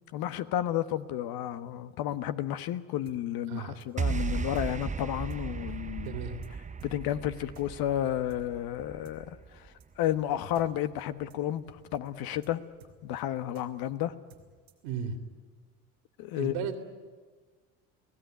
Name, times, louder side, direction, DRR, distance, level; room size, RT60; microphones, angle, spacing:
voice 1, 0.1-6.2 6.8-9.4 10.0-11.6 11.9-12.6 13.0-14.1 16.2-16.5, left 12 dB, 60° left, 1.4 m, -31 dB
sound 1, 3.1-3.2 3.8-3.9 4.5-4.7 5.3-5.4 5.7-5.8 6.1-6.2 6.4-6.5 6.8-6.9 7.5-7.7 8.3-8.4 9.0-9.2 9.8-9.9 10.2-10.3 10.5-10.7 10.9-11.0 11.3-11.4 11.7-11.8 12.1-12.2 12.4-12.5 12.8-13.2 13.5-13.7 14.3-14.9, right 4 dB, 90° right, 2.9 m, -55 dB
sound 2, 4.0-10.4, right 5 dB, 20° right, 0.7 m, -36 dB
voice 2, 6.0-6.4 14.8-15.2 16.3-16.8, right 7 dB, 65° right, 3.1 m, -35 dB
30.0 x 17.5 x 9.4 m
hypercardioid pair, 65°, 42 cm